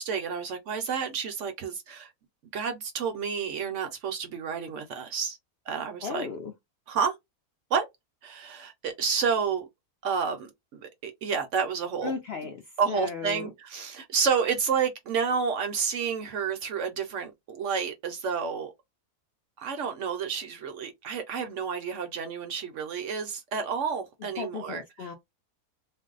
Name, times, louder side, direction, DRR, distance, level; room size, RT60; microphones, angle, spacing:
voice 1, 0.0-2.1 2.5-5.4 5.7-6.3 6.9-7.2 7.7-7.9 8.2-9.7 10.0-12.1 12.8-18.7 19.6-24.8, right 6 dB, 65° right, 0.8 m, -30 dB
voice 2, 6.0-6.5 12.0-13.5 24.4-25.1, left 6 dB, 65° left, 0.6 m, -36 dB
2.5 x 2.0 x 3.7 m
omnidirectional pair, 1.6 m